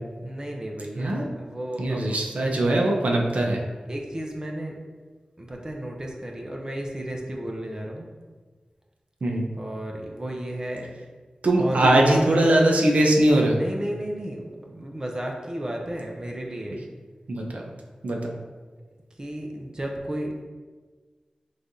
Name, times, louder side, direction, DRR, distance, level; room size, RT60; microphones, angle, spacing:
voice 1, 0.2-2.2 3.9-4.8 5.4-8.1 9.6-10.9 11.6-12.3 13.5-16.8 19.2-20.4, right 1 dB, 30° right, 1 dB, 0.7 m, -33 dB
voice 2, 1.0-1.3 1.8-3.6 9.2-9.5 11.4-13.6 17.3-17.6 18.0-18.3, right 1 dB, 75° right, 0 dB, 0.7 m, -21 dB
5.9 x 3.3 x 2.7 m, 1.4 s
wide cardioid pair, 75°, 2 cm